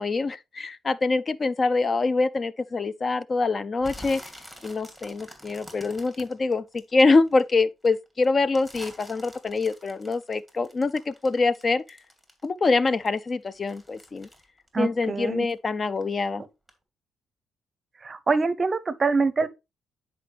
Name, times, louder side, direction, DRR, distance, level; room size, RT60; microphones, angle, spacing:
voice 1, 0.0-4.2 4.6-12.0 12.4-14.3 14.8-16.4, left 3 dB, 35° left, 0.4 m, -25 dB
sound 1, 3.8-7.4 7.8-12.6 12.9-15.6 15.9-16.3 16.7-16.8, equal, 10° left, 2.5 m, -46 dB
voice 2, 14.7-15.5 18.0-19.5, right 4 dB, 35° right, 0.6 m, -24 dB
10.0 x 4.9 x 3.3 m
cardioid pair, 90°, 0 cm